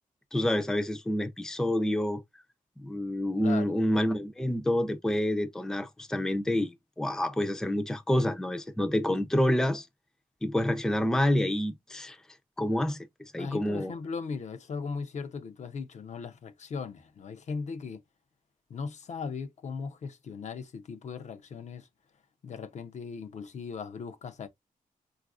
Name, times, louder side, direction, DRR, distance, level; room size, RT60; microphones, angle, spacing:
voice 1, 0.3-2.2 2.8-9.9 10.4-12.2 12.6-13.1 13.3-13.9, left 1 dB, 5° left, 0.4 m, -28 dB
voice 2, 3.4-3.8 13.4-18.0 18.7-21.9 22.4-24.5, left 5 dB, 55° left, 0.5 m, -38 dB
4.0 x 2.4 x 2.3 m
wide cardioid pair, 110°, 14 cm